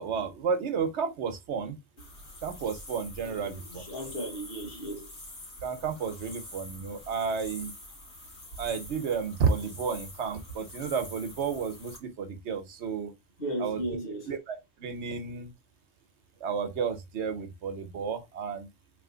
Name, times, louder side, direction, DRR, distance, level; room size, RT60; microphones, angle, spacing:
voice 1, 0.0-1.8 2.4-3.8 5.6-7.7 8.6-13.1 13.6-13.8 14.3-15.5 16.4-18.7, right 6 dB, 80° right, 1.1 m, -32 dB
sound 1, 2.0-12.0, left 1 dB, 75° left, 1.9 m, -46 dB
voice 2, 3.2-5.1 13.4-14.3, right 1 dB, 60° left, 1.6 m, -36 dB
3.4 x 2.9 x 3.8 m
omnidirectional pair, 1.1 m